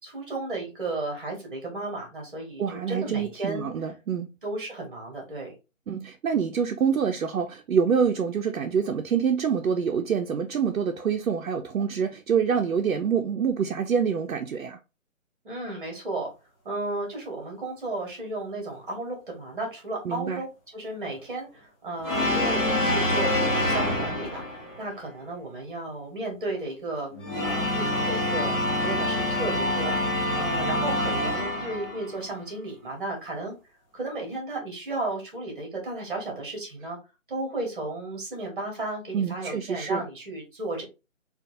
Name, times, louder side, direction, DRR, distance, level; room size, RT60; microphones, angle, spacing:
voice 1, 0.0-3.7 4.4-5.5 15.4-16.3 16.6-27.1 27.4-29.9 30.3-33.5 33.9-37.0 37.3-40.8, right 2 dB, 40° right, 1.4 m, -34 dB
voice 2, 2.6-4.3 5.9-14.8 20.1-20.4 39.1-40.0, right 7 dB, 85° right, 0.6 m, -26 dB
sound 1, 22.0-24.8 27.1-32.3, left 1 dB, 20° left, 1.0 m, -26 dB
3.7 x 2.4 x 2.6 m
figure-of-eight pair, 165°, 40 cm